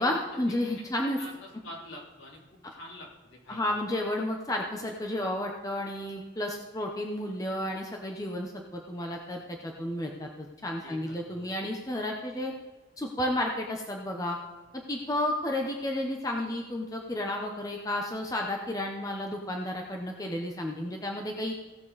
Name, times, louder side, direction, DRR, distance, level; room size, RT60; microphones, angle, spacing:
voice 1, 0.0-1.2 3.5-12.5 13.0-14.4 14.7-21.5, left 1 dB, 20° left, 1 dB, 0.9 m, -32 dB
voice 2, 1.2-3.7 10.8-11.5, left 1 dB, 70° left, -3 dB, 3.4 m, -47 dB
16.5 x 7.0 x 4.1 m, 1.3 s
head